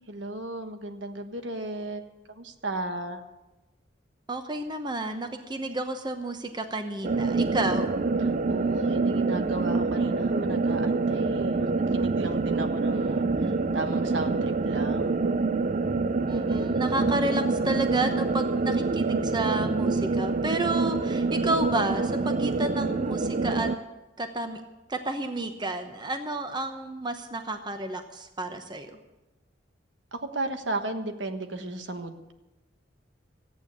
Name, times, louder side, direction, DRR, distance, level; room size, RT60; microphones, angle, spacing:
voice 1, 0.1-2.1 2.3-3.2 8.5-11.7 11.9-13.3 13.7-15.2 30.1-32.3, right 2 dB, 70° right, 7 dB, 1.3 m, -34 dB
voice 2, 4.3-7.9 13.4-13.6 16.3-23.7 24.2-24.6 24.9-29.0, right 2 dB, 25° right, 7 dB, 0.9 m, -31 dB
sound 1, 7.0-23.8, right 3 dB, 40° right, 0.5 m, -26 dB
14.0 x 9.1 x 8.3 m, 1.1 s
head